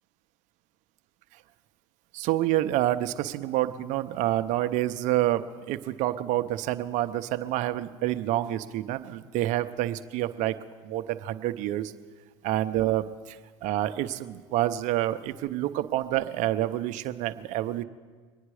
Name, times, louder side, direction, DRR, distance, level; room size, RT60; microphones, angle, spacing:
voice 1, 2.1-5.4 5.7-10.5 10.8-11.9 12.4-17.8, right 14 dB, 60° right, 10 dB, 0.8 m, -28 dB
23.5 x 9.9 x 4.9 m, 1.5 s
hypercardioid pair, 80°, 14 cm